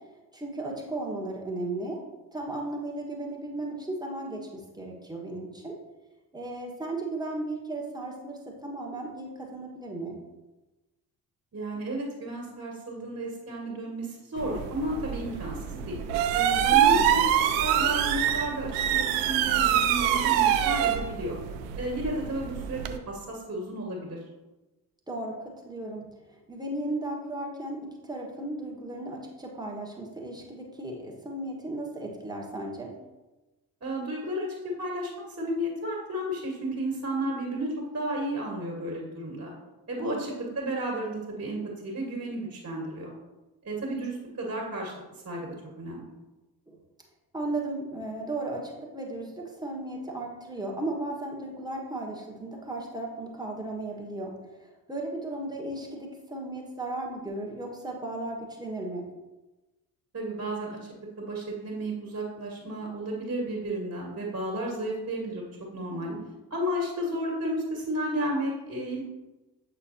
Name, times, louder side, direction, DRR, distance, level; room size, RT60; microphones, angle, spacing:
voice 1, 0.3-2.0 2.3-5.7 6.3-10.2 16.7-17.1 25.1-25.4 25.6-27.8 28.0-32.9 40.0-40.2 46.7-46.8 47.3-54.3 54.6-59.0 65.9-66.3, right 2 dB, 10° right, -1 dB, 1.5 m, -35 dB
voice 2, 11.5-16.0 16.3-17.0 17.6-21.4 21.8-22.8 23.1-24.2 33.8-35.1 35.4-39.5 39.9-43.1 43.6-44.9 45.2-45.5 45.8-46.1 60.1-60.8 61.2-65.5 65.7-66.1 66.5-69.0, right 1 dB, 30° right, -2 dB, 2.0 m, -32 dB
sound 1, 14.4-23.0, right 10 dB, 65° right, 0.6 m, -25 dB
7.8 x 4.3 x 2.8 m, 1.1 s
figure-of-eight pair, 45°, 49 cm